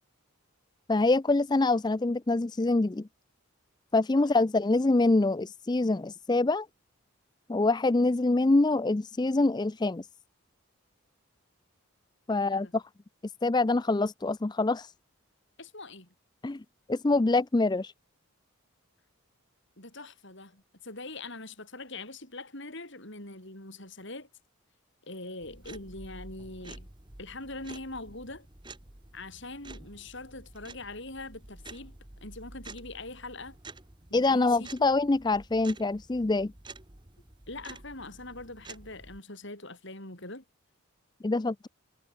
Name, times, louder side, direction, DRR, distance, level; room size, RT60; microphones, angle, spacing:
voice 1, 0.9-3.1 3.9-6.7 7.5-10.1 12.3-12.8 13.4-14.9 16.4-16.6 16.9-17.9 34.1-36.5 41.2-41.7, left 2 dB, 20° left, 0.4 m, -25 dB
voice 2, 12.3-12.7 15.6-16.1 19.8-24.3 25.0-26.9 27.2-28.5 29.1-32.0 32.2-33.5 34.1-34.7 37.5-40.4, left 2 dB, 55° left, 6.6 m, -43 dB
sound 1, 25.4-39.2, right 2 dB, 20° right, 1.4 m, -49 dB
head